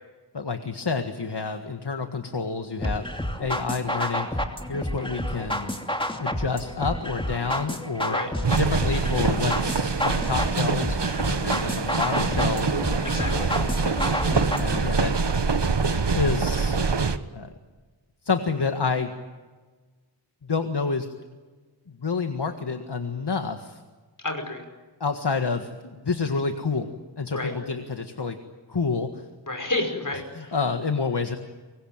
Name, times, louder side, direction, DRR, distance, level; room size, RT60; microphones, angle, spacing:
voice 1, 0.3-3.0 3.4-4.4 4.7-5.7 6.2-8.2 8.6-11.0 11.3-12.7 14.5-15.1 16.1-16.8 17.3-17.5 18.2-19.1 20.4-21.1 22.0-23.8 25.0-28.4 28.7-29.2 30.4-31.4, left 4 dB, 65° left, 6 dB, 1.7 m, -28 dB
sound 1, 2.8-14.8, left 1 dB, 10° left, 2.8 m, -30 dB
sound 2, 8.4-17.2, right 4 dB, 65° right, 1.4 m, -25 dB
voice 2, 13.1-13.5 24.2-24.6 27.3-27.5 29.5-30.5, left 2 dB, 45° left, 5 dB, 5.5 m, -30 dB
25.5 x 22.5 x 9.0 m, 1.3 s
wide cardioid pair, 55°, 44 cm